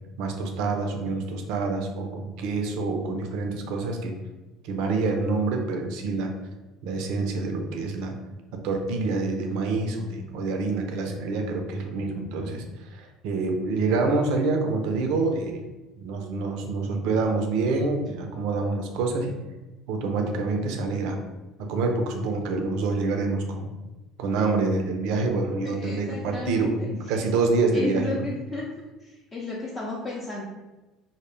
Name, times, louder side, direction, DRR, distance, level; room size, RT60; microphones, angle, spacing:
voice 1, 0.2-4.1 4.6-6.3 6.8-8.1 8.5-15.6 16.0-19.4 19.9-21.2 21.6-23.7 24.2-28.3, right 3 dB, 70° right, 3 dB, 0.4 m, -27 dB
voice 2, 25.6-26.9 27.7-28.7 29.0-30.4, left 2 dB, 30° left, -5 dB, 0.5 m, -33 dB
2.0 x 2.0 x 3.1 m, 1.1 s
hypercardioid pair, 75°, 0 cm